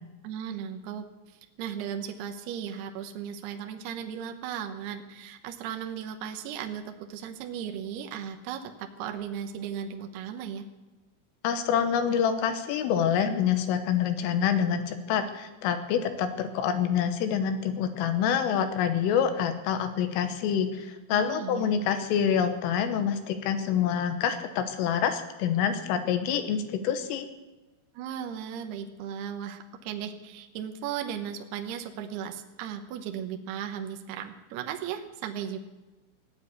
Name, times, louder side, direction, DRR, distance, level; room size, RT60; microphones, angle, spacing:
voice 1, 0.2-1.0 1.6-10.6 21.1-21.8 27.9-35.6, right 8 dB, 75° right, 5 dB, 2.5 m, -36 dB
voice 2, 11.4-27.3, left 8 dB, 80° left, 8 dB, 3.6 m, -26 dB
16.5 x 9.7 x 8.3 m, 1.1 s
omnidirectional pair, 5.8 m